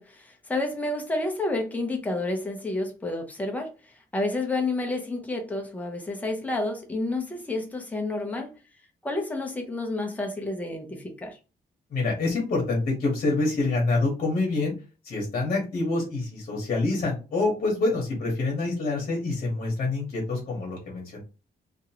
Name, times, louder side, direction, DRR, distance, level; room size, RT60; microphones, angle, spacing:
voice 1, 0.0-8.5 9.0-11.4, left 2 dB, 10° left, 0.6 m, -30 dB
voice 2, 11.9-14.7 15.0-21.2, left 3 dB, 50° left, 1.1 m, -26 dB
2.9 x 2.5 x 2.8 m
wide cardioid pair, 165°, 16 cm